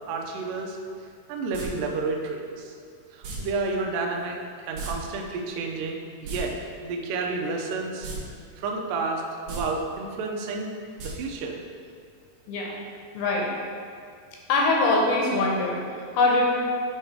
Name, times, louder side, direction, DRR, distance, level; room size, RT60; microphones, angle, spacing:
voice 1, 0.1-0.8 1.3-2.8 3.1-4.4 4.7-6.5 6.8-8.1 8.6-10.7 11.0-11.6, right 3 dB, 85° right, 1 dB, 1.9 m, -30 dB
sound 1, 1.5-1.7 3.2-3.4 4.7-4.9 5.2-5.3 6.1-6.4 8.0-8.2 8.5-8.6 9.4-9.6 11.0-11.1 11.4-11.5, right 4 dB, 65° right, 2.2 m, -35 dB
voice 2, 12.5-12.8 13.1-13.5 14.5-16.5, left 2 dB, 80° left, -1 dB, 2.5 m, -23 dB
8.4 x 3.2 x 4.7 m, 2.3 s
omnidirectional pair, 4.7 m